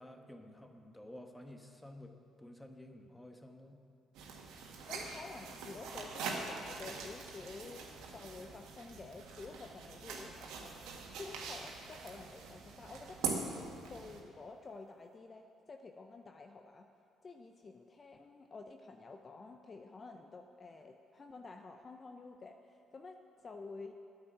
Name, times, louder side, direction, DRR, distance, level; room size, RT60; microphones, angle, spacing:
voice 1, 0.0-3.8, left 1 dB, 10° left, 5 dB, 1.3 m, -52 dB
sound 1, 4.1-14.2, right 5 dB, 75° right, 1.6 m, -43 dB
voice 2, 4.9-10.8 11.2-16.9 17.2-23.9, left 3 dB, 40° left, 5 dB, 0.7 m, -50 dB
9.4 x 8.0 x 9.1 m, 2.6 s
hypercardioid pair, 55°, 0 cm